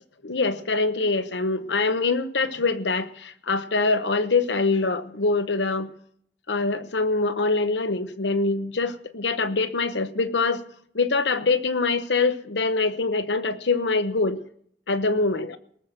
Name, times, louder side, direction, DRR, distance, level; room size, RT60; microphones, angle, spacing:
voice 1, 0.2-5.9 6.5-10.6 10.9-14.4 14.9-15.6, left 3 dB, 80° left, 11 dB, 1.0 m, -24 dB
19.0 x 7.6 x 6.5 m, 0.62 s
head